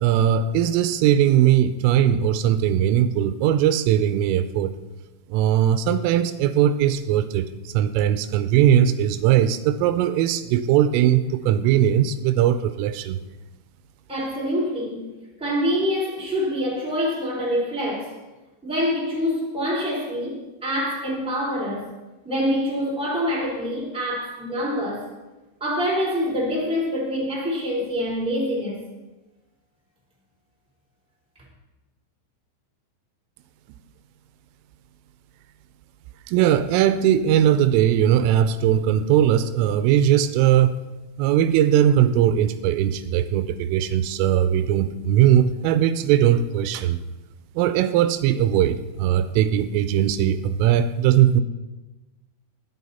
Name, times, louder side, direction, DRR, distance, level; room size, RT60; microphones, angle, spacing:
voice 1, 0.0-4.8 5.3-13.2 36.3-40.8 41.2-47.0 47.6-51.4, right 10 dB, 85° right, 11 dB, 3.2 m, -19 dB
voice 2, 14.1-15.0 15.4-18.1 18.6-21.9 22.2-25.1 25.6-28.8, equal, ahead, -4 dB, 2.8 m, -25 dB
20.0 x 8.2 x 4.2 m, 1.1 s
omnidirectional pair, 5.7 m